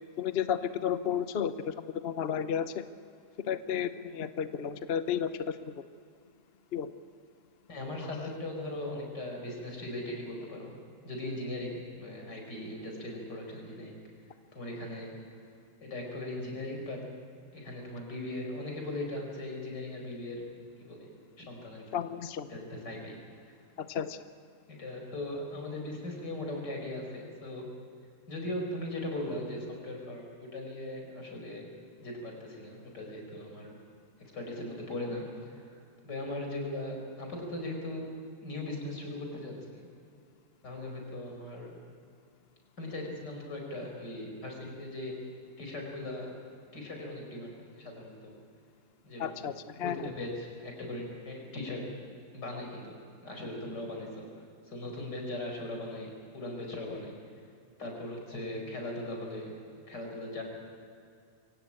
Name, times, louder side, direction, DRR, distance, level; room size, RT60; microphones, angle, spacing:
voice 1, 0.2-2.8 3.5-5.7 6.7-6.9 21.9-22.5 23.8-24.2 49.2-49.5 49.8-50.1, left 8 dB, 45° left, 11 dB, 0.8 m, -32 dB
voice 2, 7.7-10.7 11.0-14.0 14.5-15.1 15.8-17.0 17.5-20.4 20.8-21.1 21.4-21.8 22.5-23.5 24.7-27.7 28.3-31.7 32.0-33.8 34.2-38.1 38.4-39.9 40.6-41.8 42.8-45.1 45.6-46.3 46.7-48.4 49.0-49.5 49.8-51.9 52.3-53.0 53.2-54.3 54.7-57.1 57.8-59.5 59.9-60.4, left 1 dB, 80° left, 1 dB, 5.6 m, -39 dB
24.0 x 17.0 x 8.8 m, 2.4 s
omnidirectional pair, 1.8 m